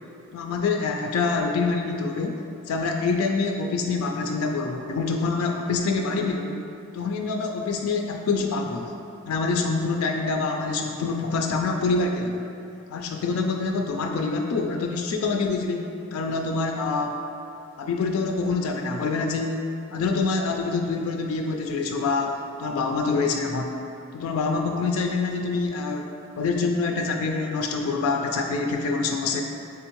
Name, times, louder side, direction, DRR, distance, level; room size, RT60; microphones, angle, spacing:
voice 1, 0.3-2.4 2.7-6.6 6.9-9.0 9.3-12.4 12.9-17.1 17.8-23.8 24.1-26.1 26.4-29.4, left 4 dB, 80° left, 3 dB, 0.3 m, -26 dB
3.5 x 3.4 x 3.0 m, 2.6 s
head